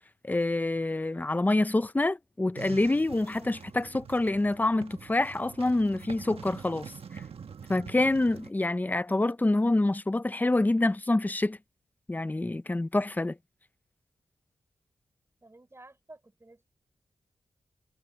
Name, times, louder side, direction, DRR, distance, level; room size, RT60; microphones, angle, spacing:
voice 1, 0.2-7.2 7.7-11.6 12.1-13.4, left 2 dB, 15° left, 0.6 m, -27 dB
sound 1, 2.5-8.5, right 6 dB, 65° right, 1.4 m, -45 dB
voice 2, 15.4-16.7, right 2 dB, 25° right, 6.4 m, -52 dB
cardioid pair, 70°, 11 cm